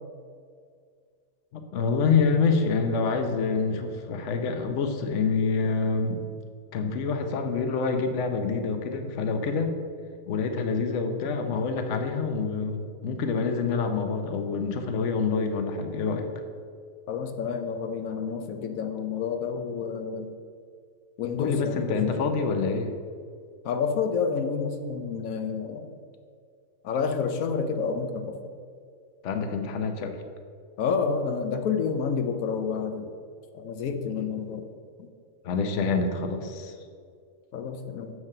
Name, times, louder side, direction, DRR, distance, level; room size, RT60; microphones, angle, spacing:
voice 1, 1.5-6.2 6.7-9.7 10.3-16.3 21.4-22.9 29.2-30.1 34.2-34.3 35.4-36.7, left 5 dB, 65° left, 6 dB, 1.1 m, -26 dB
voice 2, 17.1-20.3 21.2-22.1 23.6-25.9 26.8-28.4 30.8-33.1 33.5-34.7 37.5-38.1, left 5 dB, 85° left, 7 dB, 1.2 m, -29 dB
7.3 x 4.7 x 6.6 m, 2.2 s
omnidirectional pair, 1.4 m